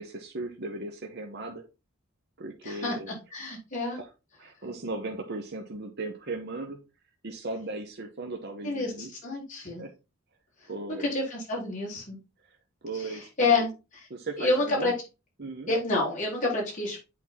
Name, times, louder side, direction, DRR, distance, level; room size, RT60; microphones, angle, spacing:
voice 1, 0.0-1.6 2.4-3.1 3.9-4.1 4.4-6.8 7.2-9.1 9.6-9.9 10.7-11.1 12.8-13.7 14.1-14.9 15.4-15.8, right 2 dB, 50° right, 3 dB, 0.9 m, -37 dB
voice 2, 2.6-4.0 8.6-9.8 10.9-12.2 13.0-14.0 14.4-14.9 15.7-17.0, left 3 dB, 35° left, -4 dB, 4.4 m, -29 dB
8.3 x 4.4 x 4.0 m, 0.28 s
head